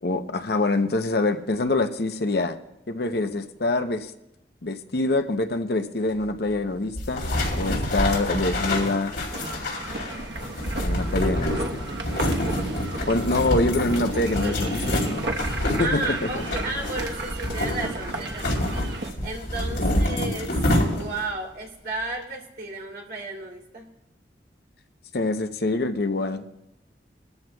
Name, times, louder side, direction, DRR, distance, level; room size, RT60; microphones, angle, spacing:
voice 1, 0.0-2.6 2.9-4.1 4.6-7.2 7.6-9.2 10.8-11.9 13.1-15.3 15.7-16.0 16.3-16.4 19.8-20.1 25.1-26.4, left 2 dB, 60° left, 8 dB, 0.7 m, -25 dB
sound 1, 7.0-21.3, left 1 dB, 75° left, 3.5 m, -27 dB
sound 2, 9.3-19.1, right 2 dB, 75° right, 1.1 m, -34 dB
voice 2, 15.8-18.7 19.2-20.5 20.9-23.8, right 2 dB, 60° right, -1 dB, 2.8 m, -33 dB
21.0 x 13.5 x 2.3 m, 0.86 s
head